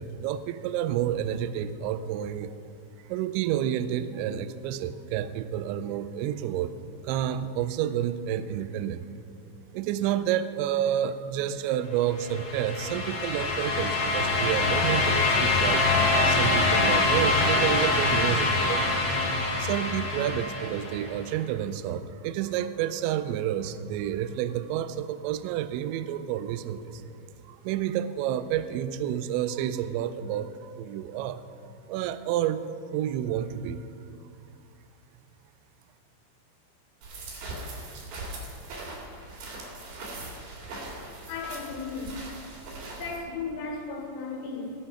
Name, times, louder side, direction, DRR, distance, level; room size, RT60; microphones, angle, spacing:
voice 1, 0.0-2.6 3.1-6.7 7.0-9.0 9.7-15.9 16.2-19.0 19.6-27.0 27.5-31.4 31.9-32.7 32.9-33.9, right 10 dB, 85° right, 12 dB, 2.8 m, -29 dB
sound 1, 12.2-21.1, left 3 dB, 50° left, 1.7 m, -25 dB
sound 2, 37.0-43.2, right 2 dB, 60° right, 3.9 m, -40 dB
voice 2, 41.3-42.2 43.0-44.7, left 4 dB, 85° left, -1 dB, 3.9 m, -35 dB
19.0 x 7.3 x 5.5 m, 2.4 s
omnidirectional pair, 5.4 m